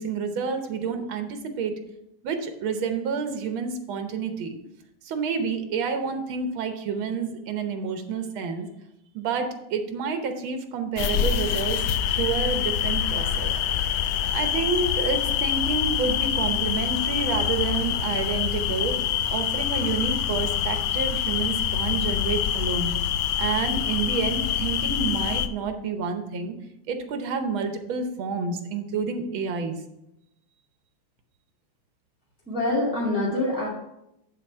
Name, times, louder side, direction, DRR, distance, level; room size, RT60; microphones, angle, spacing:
voice 1, 0.0-1.7 2.2-4.6 5.1-8.7 9.2-13.5 14.3-19.0 19.3-22.9 23.4-26.5 26.9-29.8, right 5 dB, 85° right, 6 dB, 1.8 m, -29 dB
sound 1, 11.0-25.5, left 10 dB, 90° left, 1.4 m, -25 dB
voice 2, 32.5-33.7, left 1 dB, 5° right, -6 dB, 1.8 m, -25 dB
10.0 x 4.2 x 5.5 m, 0.86 s
omnidirectional pair, 2.2 m